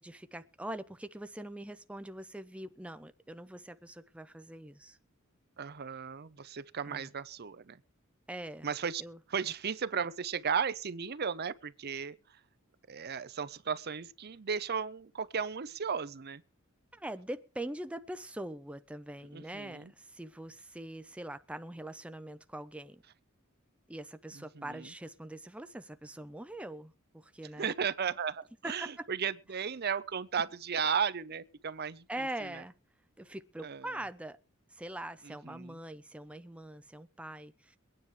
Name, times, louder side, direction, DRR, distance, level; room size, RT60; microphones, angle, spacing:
voice 1, 0.0-5.0 6.9-7.1 8.3-8.7 9.0-9.2 16.9-23.0 23.9-27.8 28.6-29.1 32.1-32.8 33.2-34.4 34.7-37.8, right 1 dB, 5° right, 0.6 m, -43 dB
voice 2, 5.6-7.8 8.6-9.0 9.3-12.2 12.9-16.4 19.3-19.9 24.6-24.9 27.6-32.1 33.6-33.9 35.2-35.8, right 6 dB, 50° right, 0.7 m, -35 dB
23.0 x 9.7 x 3.2 m
head